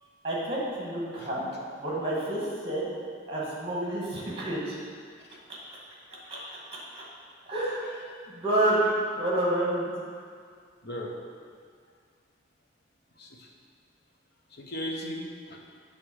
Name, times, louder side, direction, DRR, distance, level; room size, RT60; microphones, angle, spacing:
voice 1, 0.2-1.5 1.8-2.8 3.3-4.8 6.3-6.4 6.9-7.0 7.5-7.8 8.3-8.8 9.2-9.9, right 1 dB, 30° right, -5 dB, 1.9 m, -28 dB
voice 2, 6.1-6.5 8.1-8.2 10.8-11.1 13.2-13.5 14.5-15.6, equal, 60° left, 0 dB, 0.9 m, -38 dB
7.8 x 3.6 x 6.3 m, 2.1 s
head